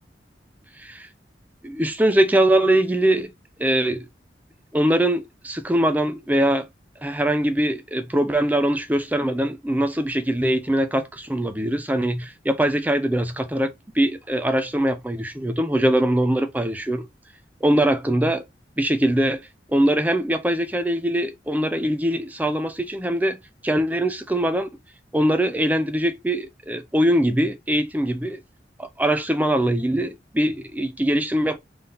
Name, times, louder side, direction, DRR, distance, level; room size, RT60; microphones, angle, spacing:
voice 1, 1.6-3.3 3.6-4.1 4.7-6.7 7.0-17.1 17.6-18.4 18.8-19.4 19.7-23.4 23.6-24.7 25.1-28.4 28.8-31.6, right 1 dB, 10° right, 0.4 m, -22 dB
3.7 x 2.7 x 3.7 m
head